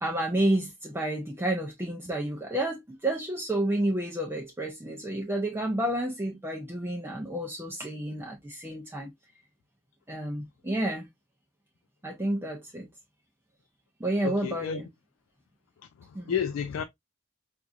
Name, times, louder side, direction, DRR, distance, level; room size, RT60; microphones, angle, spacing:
voice 1, 0.0-9.1 10.1-11.1 12.0-12.9 14.0-14.9 16.1-16.4, right 1 dB, 10° right, 0.5 m, -30 dB
voice 2, 14.2-14.8 16.0-16.8, left 7 dB, 80° left, 0.3 m, -31 dB
4.5 x 2.5 x 2.4 m
head